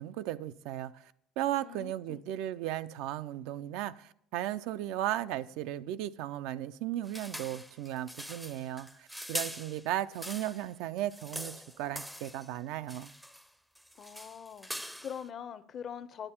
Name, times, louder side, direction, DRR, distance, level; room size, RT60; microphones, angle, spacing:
voice 1, 0.0-13.1, right 13 dB, 75° right, 0.3 m, -36 dB
voice 2, 1.6-2.2 14.0-16.3, left 8 dB, 45° left, 0.6 m, -43 dB
sound 1, 7.0-10.7 11.0-12.5 12.9-13.5 13.8-15.3, equal, ahead, 0.5 m, -43 dB
8.8 x 8.4 x 4.3 m
supercardioid pair, 95°, 0 cm